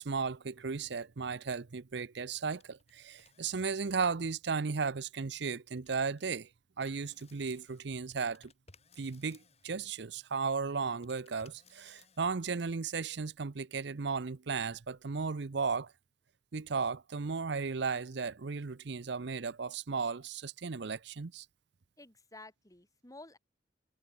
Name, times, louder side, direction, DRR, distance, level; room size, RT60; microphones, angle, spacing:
voice 1, 0.0-6.5 6.8-8.5 9.0-15.9 16.5-21.5, right 5 dB, 65° right, 0.7 m, -35 dB
sound 1, 2.5-2.9 3.2-4.2 5.8-6.5 6.8-9.8 11.0-12.4, left 5 dB, 35° left, 2.6 m, -63 dB
voice 2, 22.0-23.4, left 2 dB, 20° left, 3.1 m, -52 dB
head